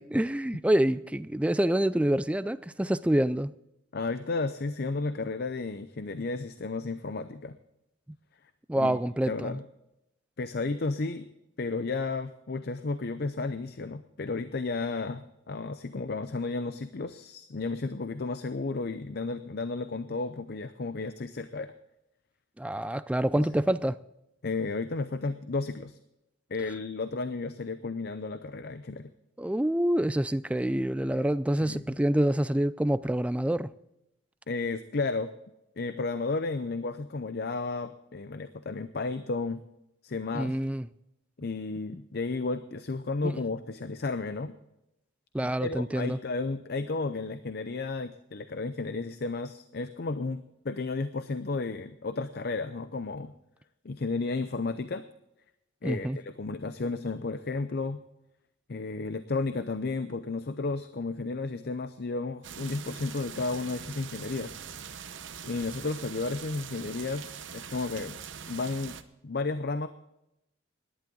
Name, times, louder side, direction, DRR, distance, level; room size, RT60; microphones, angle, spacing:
voice 1, 0.0-3.5 8.7-9.6 22.6-24.0 29.4-33.7 40.3-40.9 43.2-43.4 45.3-46.2 55.8-56.2, right 1 dB, 5° right, 0.3 m, -27 dB
voice 2, 3.9-7.6 8.7-9.0 9.3-9.6 10.4-11.3 11.6-21.7 23.4-23.5 24.4-26.0 26.5-29.1 31.1-31.2 31.6-31.8 34.5-35.3 35.8-39.6 40.0-40.6 41.4-44.6 45.4-53.3 53.8-55.0 55.8-58.0 58.7-64.6 65.4-68.2 68.5-69.0 69.2-69.9, left 3 dB, 50° left, 0.6 m, -33 dB
sound 1, 62.4-69.0, right 7 dB, 65° right, 0.9 m, -43 dB
18.0 x 11.0 x 3.9 m
head